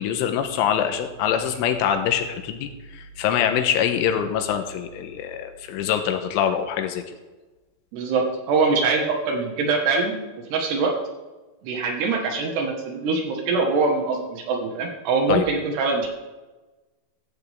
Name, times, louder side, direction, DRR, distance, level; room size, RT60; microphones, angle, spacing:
voice 1, 0.0-7.0 15.3-15.5, left 9 dB, 80° left, 6 dB, 3.4 m, -24 dB
voice 2, 7.9-10.1 10.5-10.9 11.6-16.1, right 4 dB, 65° right, 1 dB, 3.4 m, -23 dB
15.0 x 14.5 x 3.6 m, 1.2 s
omnidirectional pair, 5.7 m